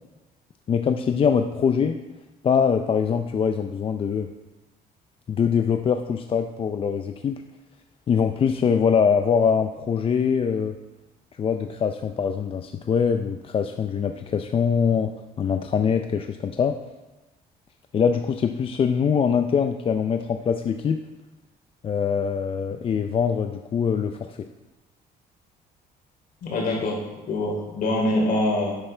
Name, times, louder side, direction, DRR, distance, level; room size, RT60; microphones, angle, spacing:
voice 1, 0.7-2.0 2.4-4.3 5.3-7.4 8.1-10.7 11.4-15.1 15.4-16.8 17.9-21.0 21.8-24.4, left 6 dB, 35° left, 6 dB, 0.4 m, -23 dB
voice 2, 26.4-28.8, left 1 dB, 55° left, -2 dB, 3.1 m, -24 dB
10.0 x 8.3 x 3.3 m, 1.1 s
cardioid pair, 110°, 17 cm